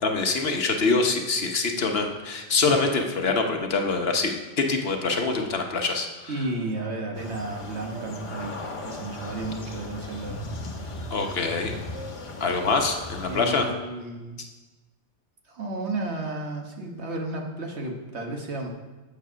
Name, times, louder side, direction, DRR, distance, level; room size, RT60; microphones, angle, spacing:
voice 1, 0.0-6.3 11.1-11.7 12.4-13.7, left 4 dB, 60° left, 4 dB, 1.1 m, -25 dB
voice 2, 6.3-10.4 13.3-14.4 15.5-18.7, right 2 dB, 70° right, 1 dB, 1.5 m, -33 dB
sound 1, 7.1-13.5, left 2 dB, 30° left, 0.8 m, -37 dB
7.7 x 7.1 x 5.6 m, 1.2 s
omnidirectional pair, 1.2 m